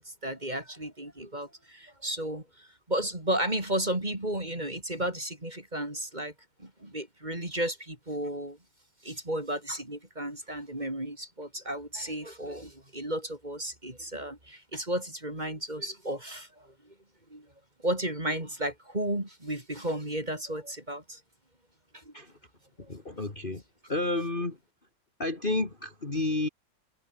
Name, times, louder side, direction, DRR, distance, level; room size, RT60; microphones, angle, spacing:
voice 1, 0.0-6.3 6.6-8.6 9.0-16.7 17.3-17.5 17.8-21.2 21.9-22.1 22.8-22.9, right 1 dB, 20° right, 4.4 m, -33 dB
voice 2, 22.9-23.6 23.9-24.6 25.2-26.5, left 2 dB, 25° left, 2.7 m, -30 dB
omnidirectional pair, 2.3 m